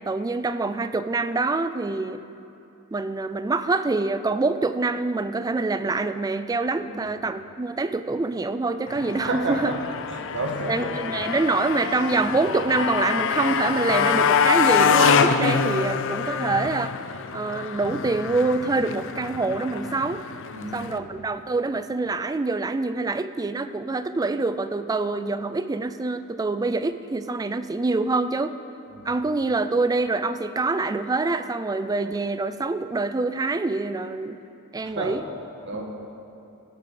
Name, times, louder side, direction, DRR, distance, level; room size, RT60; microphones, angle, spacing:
voice 1, 0.1-2.2 2.9-9.7 10.7-16.9 17.3-20.2 20.7-28.6 29.0-34.4 34.7-35.2, right 3 dB, 15° right, 11 dB, 0.3 m, -25 dB
Motorcycle, 8.9-21.0, left 6 dB, 60° left, 0.5 m, -25 dB
voice 2, 9.2-9.8 10.1-10.9 20.5-21.1 28.9-29.1 34.8-35.2 35.6-35.8, right 2 dB, 60° right, 1 dB, 1.4 m, -31 dB
16.5 x 7.1 x 5.0 m, 2.8 s
head